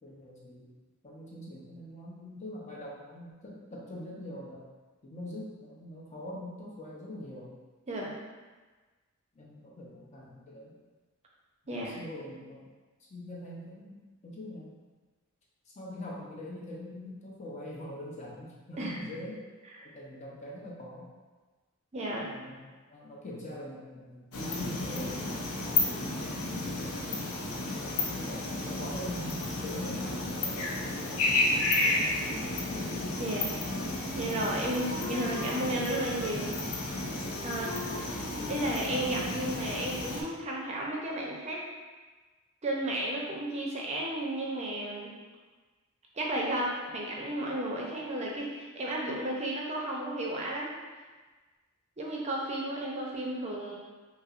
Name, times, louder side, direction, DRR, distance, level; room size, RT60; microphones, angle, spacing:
voice 1, 0.0-0.7 1.0-4.6 5.0-7.5 9.3-10.8 11.8-12.7 13.1-14.7 15.7-19.4 19.8-21.1 22.2-25.2 28.0-30.8 31.1-32.1 35.6-36.2, left 1 dB, 35° left, -4 dB, 0.6 m, -43 dB
voice 2, 21.9-22.3 33.2-33.5 34.1-36.6 37.4-38.2 38.5-41.6 42.6-45.1 46.1-50.7 52.0-53.7, right 1 dB, 30° right, -3 dB, 0.5 m, -33 dB
sound 1, 24.3-40.2, left 2 dB, 80° left, 0.5 m, -32 dB
Wind instrument woodwind instrument, 33.5-35.6 36.0-37.1 37.3-39.5, left 1 dB, 15° left, 1.1 m, -43 dB
5.4 x 2.0 x 2.4 m, 1.3 s
head